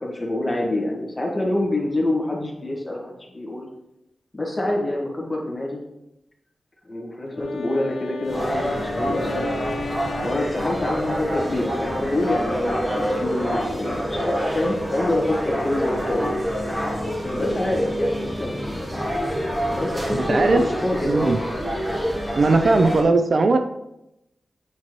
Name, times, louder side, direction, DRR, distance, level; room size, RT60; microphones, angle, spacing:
voice 1, 0.0-3.7 4.3-5.8 6.8-9.5 10.2-16.3 17.0-18.8 19.6-21.3, left 1 dB, 20° left, -2 dB, 1.6 m, -26 dB
Wind instrument woodwind instrument, 7.3-12.0, left 4 dB, 75° left, 0.4 m, -36 dB
sound 1, 8.2-23.0, equal, 20° right, 1.2 m, -27 dB
voice 2, 20.1-20.6 21.0-21.4 22.4-23.6, right 3 dB, 55° right, 7 dB, 0.4 m, -18 dB
8.4 x 4.5 x 3.1 m, 0.86 s
wide cardioid pair, 115°, 0 cm